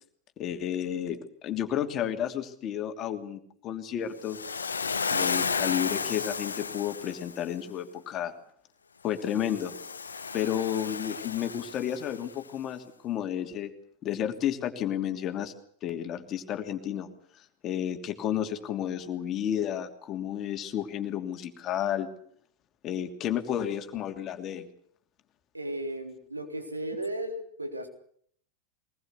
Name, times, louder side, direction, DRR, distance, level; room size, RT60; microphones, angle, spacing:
voice 1, 0.4-4.4 5.1-8.3 9.0-9.7 10.3-13.7 14.0-15.5 15.8-17.1 17.6-22.1 22.8-24.7, left 10 dB, 30° left, 6 dB, 2.9 m, -31 dB
Waves surf, 4.2-7.4 9.2-12.3, left 5 dB, 75° left, 1.2 m, -33 dB
voice 2, 25.5-27.9, right 1 dB, 80° right, 5 dB, 4.0 m, -35 dB
23.0 x 20.5 x 8.3 m, 0.62 s
figure-of-eight pair, 90°, 0 cm